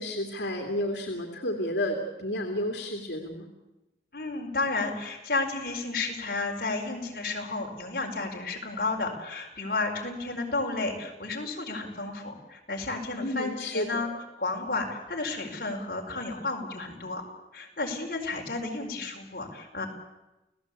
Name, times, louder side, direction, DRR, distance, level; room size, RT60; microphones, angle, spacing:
voice 1, 0.0-3.5 13.2-14.0, left 1 dB, 80° left, 2 dB, 2.8 m, -31 dB
voice 2, 4.1-14.1 14.4-17.2 17.5-19.9, left 3 dB, 55° left, 1 dB, 4.8 m, -32 dB
29.5 x 17.0 x 8.5 m, 1.0 s
head